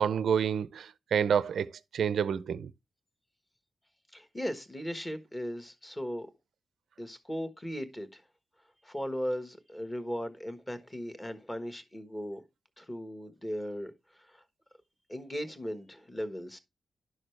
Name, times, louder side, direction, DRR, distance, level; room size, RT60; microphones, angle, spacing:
voice 1, 0.0-1.7 1.9-2.7, right 7 dB, 75° right, 0.6 m, -28 dB
voice 2, 4.1-6.3 7.0-8.2 8.8-12.4 12.8-14.4 15.1-16.6, equal, 10° left, 1.3 m, -37 dB
11.5 x 6.4 x 3.2 m
wide cardioid pair, 165°, 0 cm